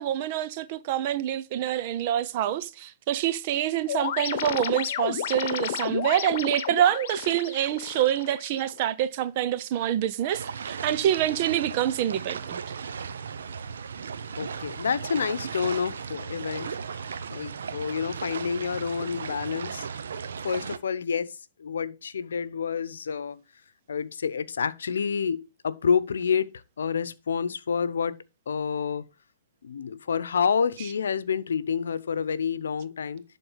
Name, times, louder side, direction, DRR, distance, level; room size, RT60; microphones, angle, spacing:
voice 1, 0.0-12.6, right 11 dB, 40° right, 0.7 m, -26 dB
sound 1, 3.9-8.8, left 9 dB, 55° left, 1.0 m, -32 dB
sound 2, 10.3-20.8, right 6 dB, 75° right, 0.9 m, -36 dB
voice 2, 14.4-17.0 17.3-19.9 20.4-23.4 23.9-28.2 28.5-29.0 29.6-33.2, left 6 dB, 80° left, 0.8 m, -28 dB
11.0 x 3.9 x 5.6 m
hypercardioid pair, 140°, 0 cm